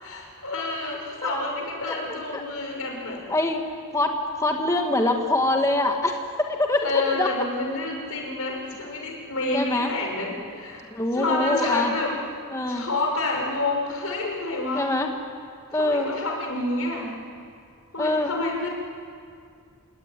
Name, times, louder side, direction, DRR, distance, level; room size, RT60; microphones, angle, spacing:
voice 1, 0.0-3.2 6.8-10.8 11.1-12.1 12.7-14.9 15.7-17.2 17.9-18.7, left 2 dB, 80° left, 1 dB, 5.9 m, -29 dB
voice 2, 3.1-7.3 9.5-9.9 10.9-11.9 12.5-12.8 14.7-15.1 15.7-16.1 18.0-18.3, left 2 dB, 15° left, 2 dB, 1.6 m, -24 dB
28.5 x 19.5 x 9.8 m, 2.3 s
head